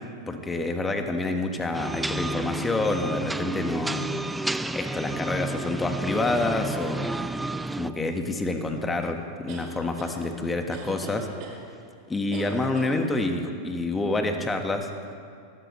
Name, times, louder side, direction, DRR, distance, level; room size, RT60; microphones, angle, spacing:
voice 1, 0.3-4.0 4.7-7.1 7.8-11.3 12.1-14.9, left 2 dB, 15° left, 5 dB, 1.5 m, -28 dB
sound 1, 1.7-7.9, right 2 dB, 5° right, 0.4 m, -31 dB
sound 2, 9.5-10.2 10.7-11.6 12.3-13.0, right 6 dB, 50° right, 3.2 m, -40 dB
20.0 x 13.5 x 3.3 m, 2.3 s
hypercardioid pair, 100°, 0 cm